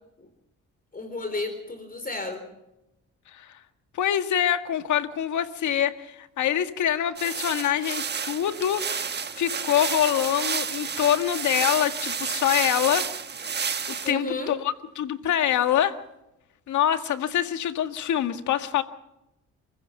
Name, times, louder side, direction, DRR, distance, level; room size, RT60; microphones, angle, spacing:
voice 1, 0.9-2.4 14.0-14.6, left 2 dB, 30° left, 9 dB, 3.9 m, -32 dB
voice 2, 3.9-8.8 9.4-13.1 14.1-16.0 16.7-18.8, left 10 dB, 75° left, 9 dB, 1.8 m, -25 dB
sound 1, 7.2-14.1, right 6 dB, 35° right, 1.3 m, -30 dB
30.0 x 15.5 x 5.8 m, 0.89 s
cardioid pair, 90°, 30 cm